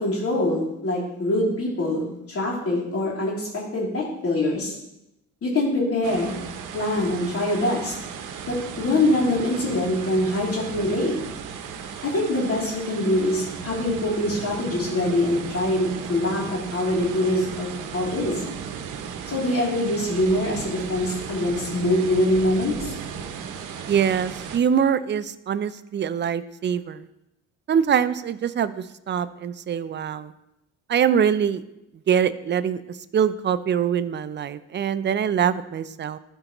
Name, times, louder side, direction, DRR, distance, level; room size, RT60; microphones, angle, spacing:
voice 1, 0.0-4.8 5.4-6.4 6.7-7.9 8.4-11.1 12.0-18.4 19.2-22.9, left 1 dB, 50° left, -4 dB, 3.0 m, -24 dB
sound 1, 6.0-24.6, right 7 dB, 90° right, 0.7 m, -35 dB
voice 2, 23.9-27.0 27.7-28.7 29.1-30.3 30.9-31.6 32.1-32.8 33.1-36.2, right 8 dB, 35° right, 14 dB, 0.4 m, -23 dB
12.5 x 4.5 x 3.0 m, 0.86 s
cardioid pair, 90°, 30 cm